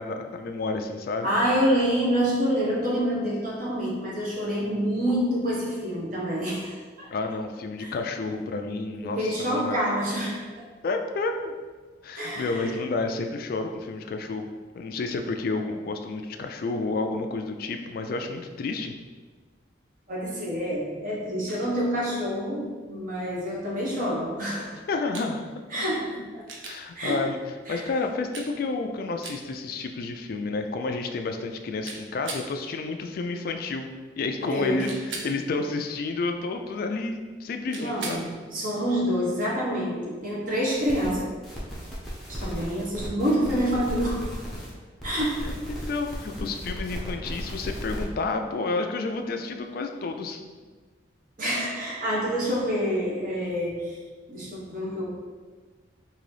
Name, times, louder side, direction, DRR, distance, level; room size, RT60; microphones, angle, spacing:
voice 1, 0.0-1.3 7.1-9.8 10.8-11.5 12.0-18.9 24.9-25.4 26.7-27.4 27.7-38.3 45.4-50.4, left 3 dB, 50° left, 5 dB, 0.3 m, -30 dB
voice 2, 1.2-7.1 7.8-7.9 9.0-10.6 12.2-12.8 20.1-24.8 25.7-26.4 27.0-27.3 27.7-27.8 34.4-34.9 37.7-41.3 42.3-44.3 45.0-45.4 51.4-54.0 54.3-55.1, equal, 45° right, -5 dB, 1.0 m, -27 dB
sound 1, 25.1-25.3 26.5-26.8 28.3-28.5 29.2-29.4 31.9-32.5 34.9-35.3 37.7-38.2 40.5-40.6, right 3 dB, 80° right, 0.5 m, -37 dB
sound 2, 40.7-41.1 41.4-44.7 45.0-48.0, equal, ahead, 0.7 m, -36 dB
3.8 x 2.6 x 3.2 m, 1.4 s
head